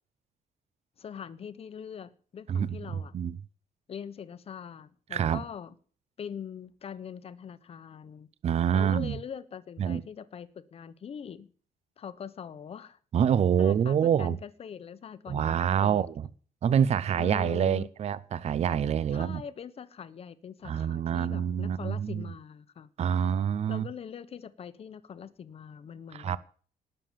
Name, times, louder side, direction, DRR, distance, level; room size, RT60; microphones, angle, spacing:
voice 1, 1.0-3.2 3.9-5.7 6.2-8.3 8.7-11.5 12.0-13.0 13.6-16.1 17.2-17.9 19.1-22.9 23.7-26.4, left 7 dB, 35° left, 1.0 m, -42 dB
voice 2, 5.1-5.4 8.4-9.2 9.8-10.0 13.1-14.4 15.3-16.2 16.6-19.4 20.6-22.2 23.0-23.9 26.1-26.4, right 8 dB, 40° right, 0.6 m, -26 dB
19.0 x 6.8 x 7.4 m
cardioid pair, 180°, 16 cm